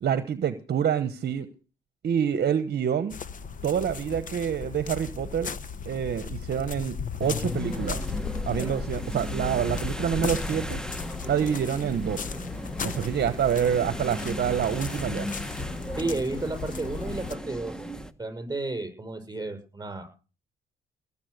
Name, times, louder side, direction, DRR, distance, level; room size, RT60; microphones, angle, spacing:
voice 1, 0.0-1.5 2.0-3.2 3.6-5.5 5.9-8.0 8.4-10.8 11.3-12.3 12.8-15.3, right 8 dB, 55° right, 12 dB, 1.0 m, -27 dB
sound 1, 3.1-17.3, left 6 dB, 40° left, 1.0 m, -36 dB
sound 2, 7.2-18.1, equal, 5° left, 1.1 m, -36 dB
voice 2, 16.0-17.7 18.2-20.1, right 2 dB, 20° right, 8 dB, 6.3 m, -32 dB
19.0 x 7.4 x 6.6 m, 0.36 s
cardioid pair, 90°, 20 cm